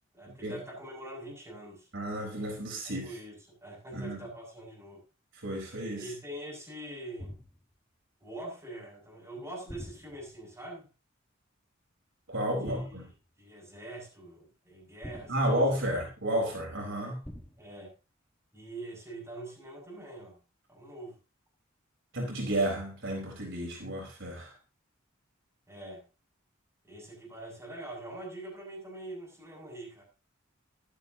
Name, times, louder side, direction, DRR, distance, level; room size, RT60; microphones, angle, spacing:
voice 1, 0.1-1.9 2.8-5.0 6.0-7.3 8.2-10.9 12.6-13.1 13.4-16.0 17.6-17.9 18.5-20.4 20.7-21.2 25.7-26.0 26.8-30.0, right 1 dB, 15° right, -2 dB, 7.6 m, -44 dB
voice 2, 1.9-3.1 3.9-4.2 5.4-6.1 12.3-13.0 15.3-17.2 22.1-24.5, right 1 dB, 65° right, 0 dB, 4.4 m, -31 dB
sound 1, 7.2-7.7 9.7-10.4 12.7-13.2 15.0-15.9 17.2-17.8, equal, 10° left, 1.2 m, -46 dB
15.0 x 12.0 x 2.9 m, 0.29 s
head